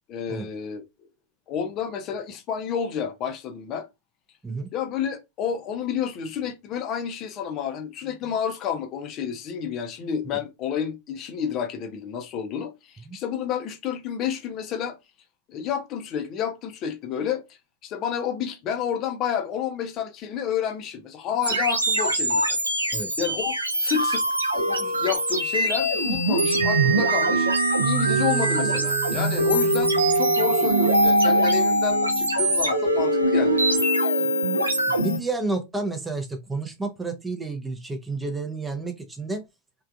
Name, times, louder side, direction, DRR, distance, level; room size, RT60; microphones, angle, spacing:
voice 1, 0.1-0.8 1.5-3.9 4.7-15.0 15.5-17.4 17.8-22.6 23.2-24.2 24.5-27.5 27.8-34.1, left 8 dB, 35° left, 0.6 m, -30 dB
sound 1, 21.4-35.2, right 1 dB, 80° right, 0.6 m, -22 dB
voice 2, 34.9-39.4, right 3 dB, 10° right, 0.6 m, -30 dB
3.3 x 2.4 x 2.4 m
figure-of-eight pair, 90°, 0 cm